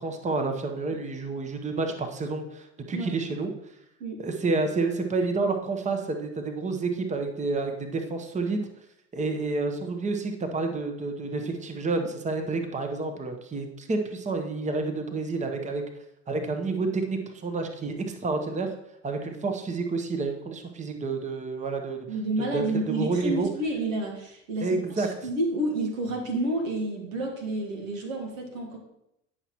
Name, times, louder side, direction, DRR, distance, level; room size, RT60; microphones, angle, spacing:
voice 1, 0.0-3.5 4.2-8.6 9.1-15.8 16.3-18.7 19.0-22.1 22.4-23.5 24.6-25.1, right 3 dB, 20° right, 5 dB, 0.9 m, -29 dB
voice 2, 22.1-28.8, right 1 dB, 85° right, 1 dB, 1.7 m, -30 dB
9.8 x 5.8 x 3.0 m, 0.83 s
hypercardioid pair, 75°, 39 cm